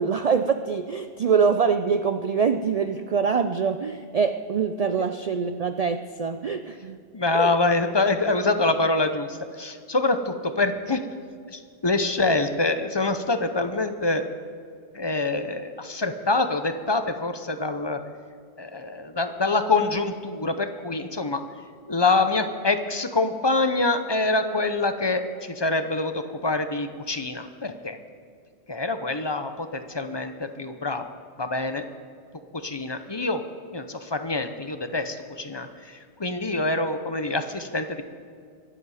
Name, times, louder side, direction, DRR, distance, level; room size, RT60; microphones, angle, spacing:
voice 1, 0.0-7.0 7.3-7.5, right 6 dB, 55° right, 8 dB, 0.4 m, -24 dB
voice 2, 7.1-11.0 11.5-14.2 14.9-18.0 18.6-21.4 21.9-28.0 28.7-31.8 32.5-33.4 33.7-38.0, left 3 dB, 30° left, 8 dB, 0.6 m, -25 dB
23.5 x 7.9 x 4.9 m, 2.2 s
omnidirectional pair, 1.1 m